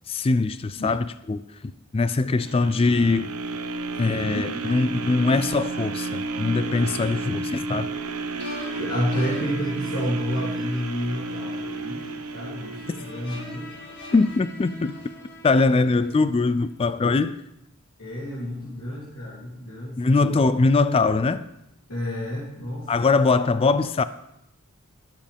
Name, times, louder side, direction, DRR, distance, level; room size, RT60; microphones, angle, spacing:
voice 1, 0.1-3.3 3.9-7.9 14.1-14.9 15.4-17.4 20.0-21.4 22.9-24.0, left 3 dB, 25° left, 0.3 m, -22 dB
sound 1, 2.4-14.5 15.0-15.1, right 3 dB, 85° right, 0.9 m, -32 dB
sound 2, 8.4-16.6, left 2 dB, 50° left, 2.0 m, -43 dB
voice 2, 8.8-13.7 18.0-20.4 21.9-22.9, equal, 75° left, 3.2 m, -30 dB
20.0 x 7.6 x 3.5 m
head